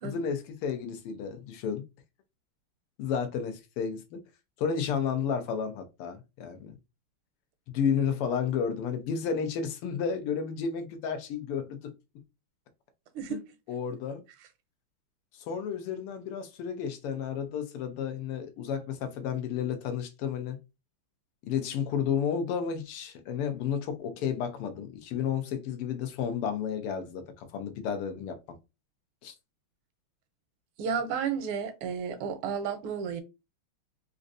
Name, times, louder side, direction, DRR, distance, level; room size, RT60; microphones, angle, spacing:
voice 1, 0.0-1.8 3.0-4.2 4.6-6.8 7.7-11.9 13.3-13.4 13.7-14.2 15.3-20.6 21.4-28.6 29.2-29.3, left 7 dB, 90° left, 1.7 m, -32 dB
voice 2, 30.8-33.2, right 7 dB, 85° right, 1.6 m, -32 dB
4.3 x 2.6 x 2.5 m
omnidirectional pair, 2.4 m